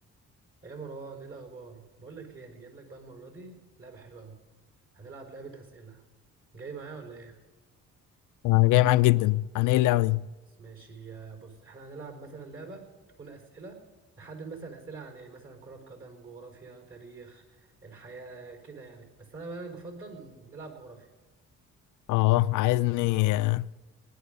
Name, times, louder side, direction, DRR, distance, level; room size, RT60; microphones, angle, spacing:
voice 1, 0.6-4.4 4.9-6.0 6.5-7.4 10.5-12.9 13.2-13.8 14.2-21.1, right 4 dB, 45° right, 4.9 m, -44 dB
voice 2, 8.4-10.3 22.1-23.7, left 18 dB, 85° left, 0.5 m, -22 dB
19.5 x 11.5 x 5.3 m
cardioid pair, 90°, 30 cm